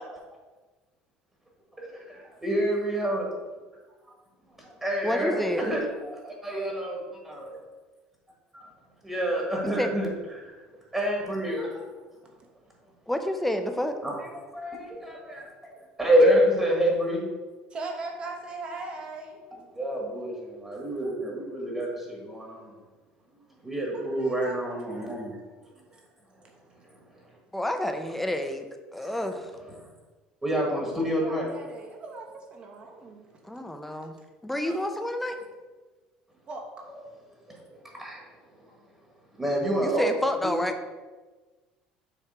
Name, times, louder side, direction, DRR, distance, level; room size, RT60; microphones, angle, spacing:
voice 1, 1.8-3.3 4.6-7.5 8.5-8.6 9.0-10.5 10.9-11.8 14.0-15.4 16.0-17.2 19.7-22.8 23.6-25.4 26.8-27.3 28.9-29.9 30.4-31.5 37.5-38.2 39.4-40.1 40.4-40.5, equal, 10° right, -2 dB, 1.5 m, -28 dB
voice 2, 5.0-5.6 9.8-9.9 13.1-13.9 27.5-28.7 28.9-29.5 33.4-34.1 34.4-35.4 39.8-40.7, left 1 dB, 5° left, 6 dB, 0.5 m, -29 dB
voice 3, 17.7-19.4 23.9-25.3 30.9-32.2 32.5-33.3 34.6-34.8 36.5-36.6, right 3 dB, 35° right, 1 dB, 1.2 m, -39 dB
7.2 x 3.3 x 4.9 m, 1.3 s
cardioid pair, 135°, 3 cm